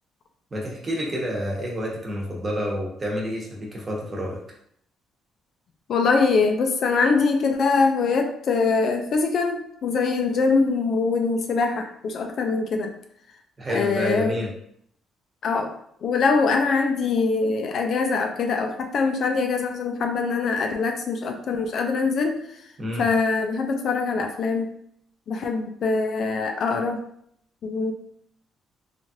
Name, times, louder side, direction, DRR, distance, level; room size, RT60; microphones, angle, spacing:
voice 1, 0.5-4.4 13.6-14.5 22.8-23.1, equal, 30° right, -2 dB, 1.0 m, -28 dB
voice 2, 5.9-12.9 13.7-14.4 15.4-15.7 16.0-22.4 23.0-24.7 25.3-27.0 27.6-27.9, left 4 dB, 60° left, 4 dB, 0.4 m, -23 dB
3.1 x 2.4 x 2.7 m, 0.69 s
cardioid pair, 90°, 0 cm